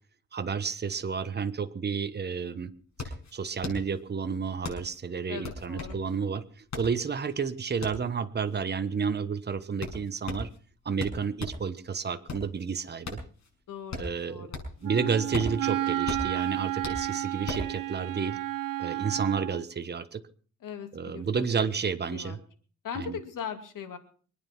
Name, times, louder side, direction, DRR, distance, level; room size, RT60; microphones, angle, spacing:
voice 1, 0.3-2.7 3.3-6.4 6.8-10.5 10.8-13.2 14.0-14.5 14.8-18.4 18.8-20.2 20.9-22.4 22.9-23.2, right 6 dB, 30° right, 10 dB, 1.2 m, -31 dB
sound 1, 2.0-2.1 2.4-11.7 12.1-14.9 15.2-17.8, left 3 dB, 60° left, 6.0 m, -38 dB
voice 2, 5.3-6.0 13.7-14.6 20.6-21.4 22.1-22.4 22.8-24.0, left 7 dB, 80° left, 7 dB, 2.7 m, -39 dB
Wind instrument woodwind instrument, 14.8-19.6, right 13 dB, 90° right, 0.7 m, -32 dB
24.0 x 9.5 x 6.0 m, 0.43 s
cardioid pair, 120°, 32 cm